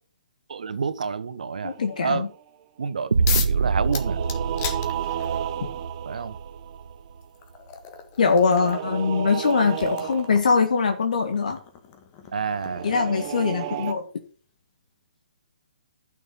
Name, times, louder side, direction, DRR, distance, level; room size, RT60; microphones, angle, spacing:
voice 1, 0.5-2.2 2.8-4.2 6.0-6.4 12.3-12.9, right 5 dB, 70° right, 13 dB, 1.2 m, -29 dB
voice 2, 1.6-2.2 8.2-11.6 12.8-14.0, left 5 dB, 65° left, 5 dB, 1.6 m, -22 dB
sound 1, 1.6-2.5 3.7-7.2 8.2-10.7 12.5-13.9, right 11 dB, 35° right, 0.9 m, -33 dB
sound 2, 3.1-7.1, right 5 dB, 85° right, 0.5 m, -26 dB
sound 3, 3.3-3.6 3.9-5.5 6.6-6.7 7.2-13.9, left 8 dB, 30° left, 1.5 m, -36 dB
11.5 x 6.4 x 5.6 m, 0.41 s
hypercardioid pair, 140°, 4 cm